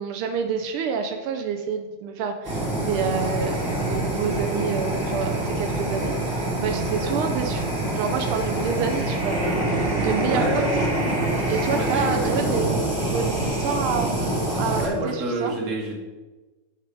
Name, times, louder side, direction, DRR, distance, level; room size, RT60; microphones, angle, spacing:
voice 1, 0.0-10.6 11.5-14.1 14.6-15.6, right 6 dB, 85° right, 5 dB, 1.6 m, -28 dB
Fire, 2.4-14.9, right 1 dB, 5° right, 2.8 m, -25 dB
voice 2, 10.2-10.7 11.7-12.5 14.5-16.0, right 2 dB, 40° right, -1 dB, 1.9 m, -29 dB
6.7 x 6.4 x 4.8 m, 1.2 s
omnidirectional pair, 2.3 m